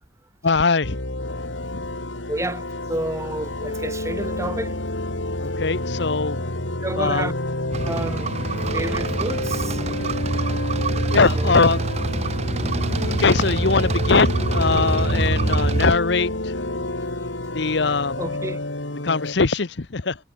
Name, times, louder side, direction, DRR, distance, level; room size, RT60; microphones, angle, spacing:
voice 1, 0.4-1.0 1.7-1.9 5.4-6.4 7.0-7.3 11.1-11.8 13.2-16.5 17.5-18.2 19.0-20.2, left 4 dB, 70° left, 0.9 m, -21 dB
sound 1, 0.8-19.3, left 1 dB, 90° left, 3.7 m, -29 dB
voice 2, 2.3-4.7 6.8-7.3 7.8-8.3 8.7-9.8 11.4-11.5 18.2-18.6, right 1 dB, 15° right, 1.8 m, -30 dB
sound 2, 7.7-15.9, right 3 dB, 35° right, 0.6 m, -25 dB
head